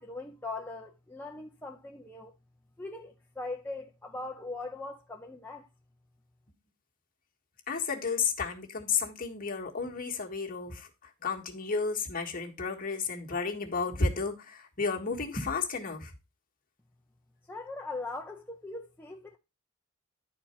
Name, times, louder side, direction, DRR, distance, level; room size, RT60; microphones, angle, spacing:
voice 1, 0.0-2.3 2.8-5.7 17.4-19.4, left 2 dB, 10° left, 0.5 m, -40 dB
voice 2, 7.7-16.1, left 4 dB, 40° left, 1.5 m, -32 dB
10.5 x 4.4 x 4.4 m
head